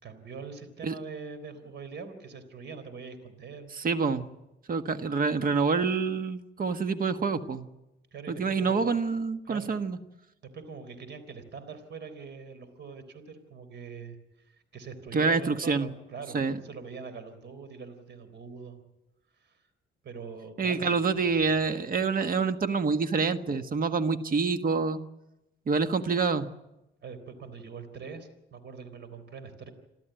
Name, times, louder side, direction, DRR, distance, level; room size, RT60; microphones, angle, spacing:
voice 1, 0.0-3.7 8.1-9.0 9.4-9.7 10.5-18.8 19.4-19.6 20.0-21.0 27.0-29.7, right 5 dB, 60° right, 12 dB, 3.9 m, -43 dB
voice 2, 3.8-4.3 4.7-7.7 8.3-10.0 15.1-15.9 16.3-16.6 20.6-25.0 25.7-26.5, right 4 dB, 45° right, 9 dB, 1.6 m, -27 dB
28.0 x 13.5 x 9.1 m, 0.95 s
cardioid pair, 90°, 20 cm